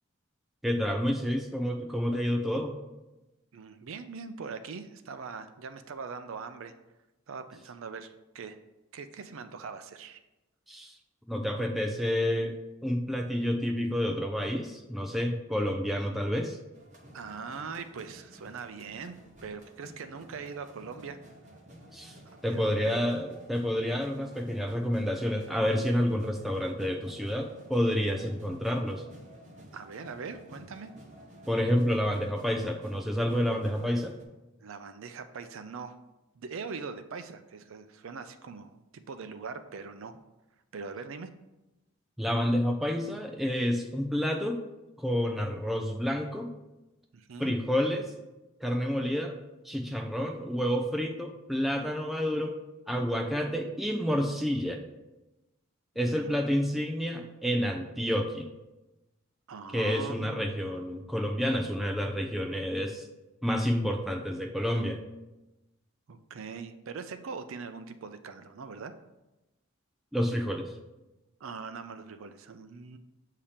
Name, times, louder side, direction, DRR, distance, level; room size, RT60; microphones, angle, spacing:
voice 1, 0.6-2.8 10.7-10.9 11.3-16.6 21.9-22.2 22.4-29.0 31.5-34.1 42.2-44.6 45.0-46.5 47.4-48.1 48.6-49.4 49.6-52.6 52.9-54.8 56.0-58.5 59.7-63.1 63.4-65.0 70.1-70.7, equal, ahead, 2 dB, 0.4 m, -29 dB
voice 2, 3.5-6.7 7.3-8.6 8.9-10.2 17.1-19.2 19.4-21.2 22.3-23.0 29.7-30.9 34.6-36.0 36.3-40.1 40.7-41.3 47.1-47.6 56.0-56.4 59.5-60.5 66.1-69.0 71.4-73.0, right 5 dB, 70° right, 10 dB, 0.4 m, -41 dB
sound 1, 16.7-34.2, equal, 35° right, 0.9 m, -52 dB
7.1 x 2.8 x 5.0 m, 1.0 s
head